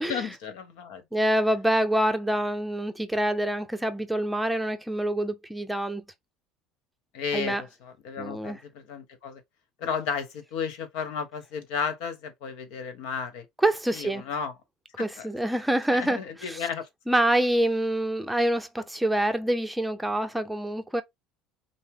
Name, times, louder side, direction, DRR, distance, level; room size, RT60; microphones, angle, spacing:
voice 1, 0.1-1.0 7.1-9.4 9.8-13.4 13.9-14.5 15.0-15.3 15.9-16.9, left 6 dB, 75° left, 1.2 m, -33 dB
voice 2, 1.1-6.0 7.3-7.6 8.2-8.6 13.6-14.2 15.0-16.6 17.1-21.0, right 1 dB, 5° right, 0.6 m, -26 dB
5.5 x 2.0 x 3.6 m
cardioid pair, 130°, 0 cm